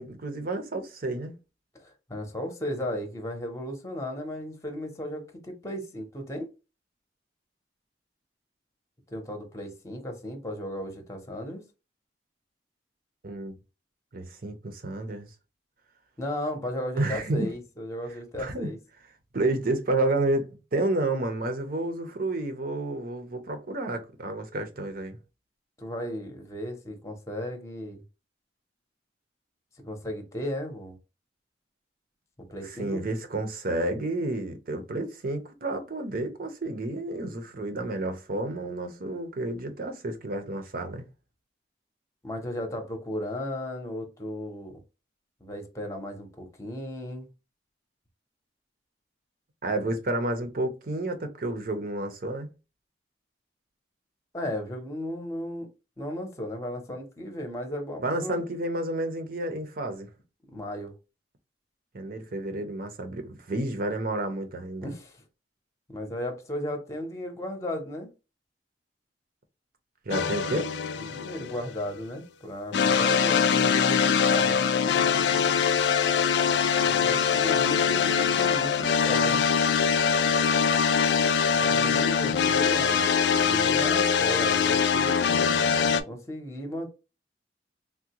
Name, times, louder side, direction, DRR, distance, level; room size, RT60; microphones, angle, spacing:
voice 1, 0.0-1.3 13.2-13.6 14.1-15.3 17.0-17.5 18.4-18.7 19.3-25.2 32.6-41.0 49.6-52.5 58.0-60.1 61.9-64.9 70.1-70.7, right 2 dB, 55° right, 0.7 m, -30 dB
voice 2, 1.8-6.5 9.1-11.6 16.2-18.8 25.8-28.0 29.8-30.9 32.5-33.0 42.2-44.8 45.4-47.3 54.3-55.7 56.0-58.4 60.5-60.9 64.8-65.2 65.9-68.1 70.9-74.6 76.8-79.4 81.3-85.2 86.1-86.9, left 1 dB, 15° left, 0.8 m, -35 dB
sound 1, 70.1-71.8 72.7-86.0, left 6 dB, 70° left, 0.4 m, -23 dB
3.5 x 2.2 x 2.8 m
head